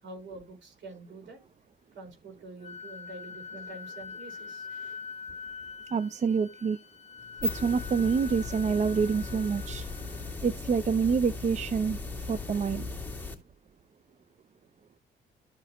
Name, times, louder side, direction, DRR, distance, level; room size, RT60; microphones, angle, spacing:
voice 1, 0.0-1.4 1.9-5.0 7.3-7.5, right 2 dB, 65° right, 5.1 m, -46 dB
Wind instrument woodwind instrument, 2.6-10.4, left 6 dB, 35° left, 0.4 m, -44 dB
voice 2, 5.9-6.8 7.4-9.9 10.4-12.0 12.3-12.9, right 5 dB, 35° right, 0.5 m, -27 dB
sound 1, 7.2-13.3, left 3 dB, 10° left, 2.7 m, -37 dB
14.0 x 5.0 x 3.0 m
cardioid pair, 90°, 20 cm